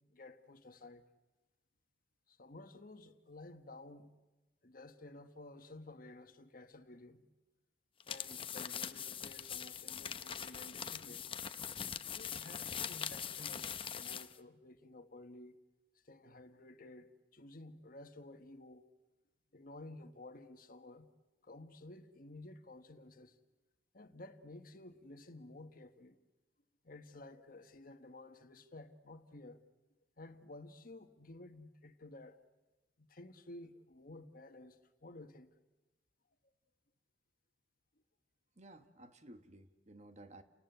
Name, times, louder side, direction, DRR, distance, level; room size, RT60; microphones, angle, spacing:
voice 1, 0.1-1.0 2.3-4.1 4.6-7.2 8.1-11.2 12.1-15.6 16.0-18.8 19.5-21.1 21.4-23.3 23.9-26.2 26.8-29.6 30.2-32.4 33.0-35.5, left 2 dB, 50° left, 1.4 m, -53 dB
sound 1, 8.0-14.4, left 8 dB, 30° left, 0.8 m, -42 dB
voice 2, 38.5-40.4, right 1 dB, 40° right, 1.4 m, -56 dB
30.0 x 19.0 x 8.0 m
head